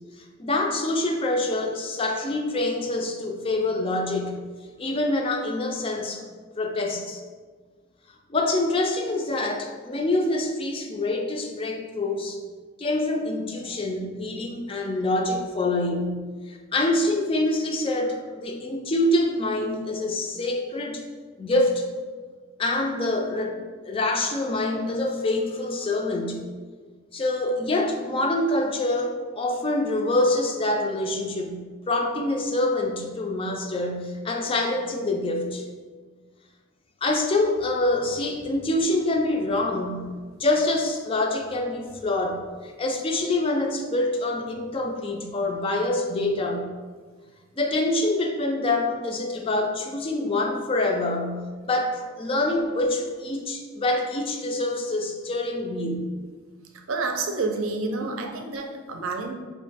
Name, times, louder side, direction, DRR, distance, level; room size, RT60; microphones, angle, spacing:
voice 1, 0.4-4.4 4.8-6.2 6.6-7.2 8.3-12.4 12.8-21.0 21.4-21.9 22.6-23.6 23.8-26.4 27.1-35.6 37.0-46.7 47.6-56.1, left 2 dB, 25° left, 2 dB, 0.4 m, -26 dB
voice 2, 56.9-59.3, right 3 dB, 80° right, 3 dB, 0.5 m, -29 dB
4.1 x 3.0 x 3.4 m, 1.5 s
head